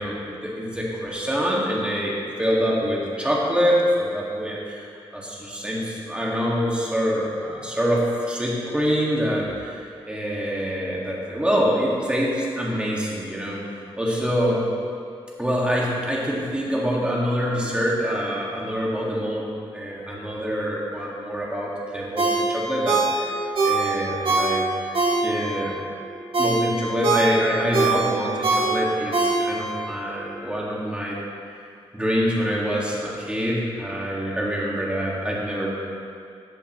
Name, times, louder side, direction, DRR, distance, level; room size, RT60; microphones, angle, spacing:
voice 1, 0.0-14.7 15.4-25.8 26.4-31.2 31.9-35.7, equal, 10° right, -5 dB, 2.2 m, -25 dB
Ringtone, 22.2-25.6 26.0-29.8 30.2-30.3, right 3 dB, 60° right, 2.2 m, -23 dB
14.5 x 8.5 x 3.2 m, 2.4 s
wide cardioid pair, 115°, 10 cm